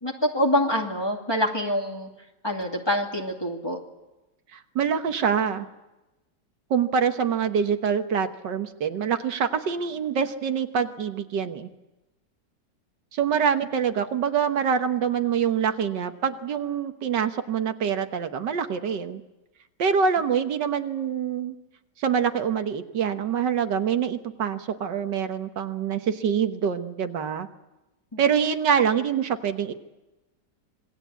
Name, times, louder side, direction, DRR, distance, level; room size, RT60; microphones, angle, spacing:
voice 1, 0.0-2.1 2.4-3.8 28.1-28.2, equal, 15° left, 1 dB, 2.5 m, -25 dB
voice 2, 4.5-5.7 6.7-11.7 13.1-19.2 19.8-21.6 22.0-27.5 28.2-29.7, right 7 dB, 80° right, 7 dB, 1.9 m, -25 dB
26.5 x 21.0 x 8.4 m, 1.0 s
omnidirectional pair, 1.9 m